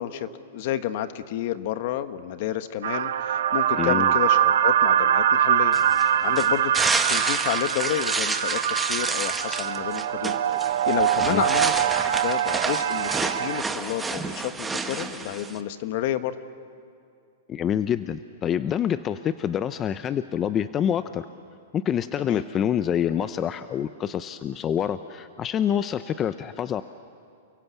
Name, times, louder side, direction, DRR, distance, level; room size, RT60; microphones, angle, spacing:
voice 1, 0.0-6.7 7.1-16.4 22.2-22.4, left 12 dB, 55° left, 11 dB, 1.3 m, -30 dB
sound 1, 2.8-13.6, right 10 dB, 70° right, 0.9 m, -23 dB
voice 2, 3.8-4.1 11.3-11.4 17.5-21.3 21.7-26.8, left 9 dB, 25° left, 12 dB, 0.6 m, -26 dB
sound 2, 5.7-15.6, right 4 dB, 10° right, 1.4 m, -29 dB
29.5 x 22.0 x 8.3 m, 2.3 s
hypercardioid pair, 140°, 0 cm